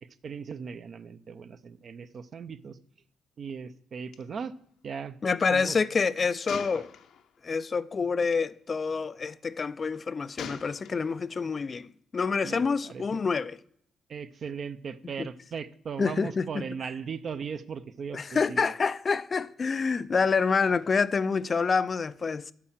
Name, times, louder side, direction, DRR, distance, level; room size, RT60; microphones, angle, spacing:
voice 1, 0.0-2.8 3.4-4.5 4.8-5.2 5.5-5.8 6.7-6.8 12.4-13.2 14.1-18.7, right 6 dB, 50° right, 0.6 m, -38 dB
Gunshot gunfire, 4.1-4.2 4.5-4.7 6.5-7.4 8.2-8.4 10.4-11.3, left 7 dB, 75° left, 0.8 m, -42 dB
voice 2, 5.2-6.9 7.4-13.6 15.2-15.3 16.0-16.6 18.1-22.5, left 5 dB, 35° left, 0.4 m, -27 dB
8.5 x 5.6 x 7.4 m
cardioid pair, 90°, 0 cm